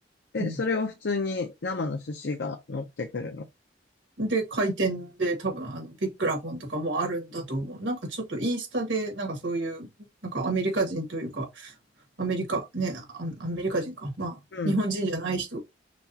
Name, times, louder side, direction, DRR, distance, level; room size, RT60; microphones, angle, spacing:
voice 1, 0.3-3.5 14.5-14.8, left 3 dB, 65° left, 0.6 m, -30 dB
voice 2, 4.2-9.9 10.2-11.8 12.2-14.4 14.6-15.6, right 2 dB, 80° right, 1.7 m, -29 dB
6.0 x 2.3 x 2.8 m
head